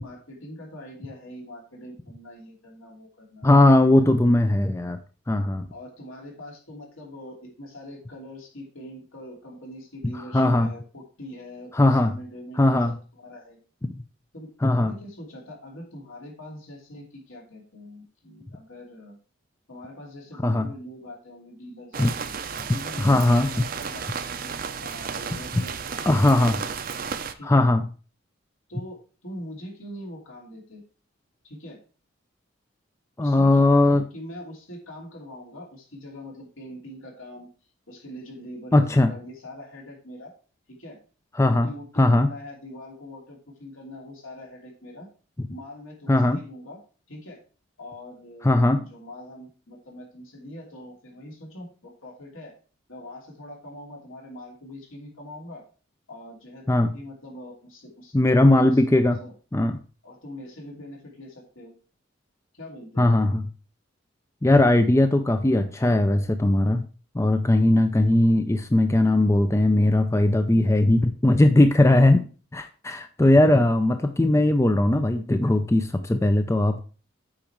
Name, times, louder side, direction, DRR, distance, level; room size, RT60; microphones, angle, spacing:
voice 1, 0.0-3.5 4.0-4.2 5.7-13.6 14.3-19.2 19.7-26.6 27.3-27.7 28.7-30.8 31.4-31.8 33.2-37.5 37.9-40.3 40.7-41.0 41.4-45.1 45.5-46.8 47.1-47.4 47.8-52.5 52.9-55.6 56.1-59.3 60.0-61.7 62.5-63.1 73.3-73.6, left 1 dB, 75° left, -1 dB, 2.9 m, -43 dB
voice 2, 3.4-5.0 5.3-5.7 10.3-10.7 11.7-12.1 12.6-13.0 13.8-13.9 14.6-14.9 20.4-20.7 22.0-22.1 23.0-23.5 26.1-26.6 27.4-27.8 33.2-34.0 38.7-39.1 41.4-41.7 42.0-42.3 46.1-46.4 48.4-48.8 56.7-56.9 58.1-59.2 59.5-59.8 63.0-63.4 64.4-66.9 67.1-72.2 72.5-76.8, left 1 dB, 15° left, 8 dB, 0.4 m, -19 dB
sound 1, 21.9-27.3, right 6 dB, 45° right, 0.6 m, -33 dB
8.8 x 5.2 x 4.5 m, 0.38 s
head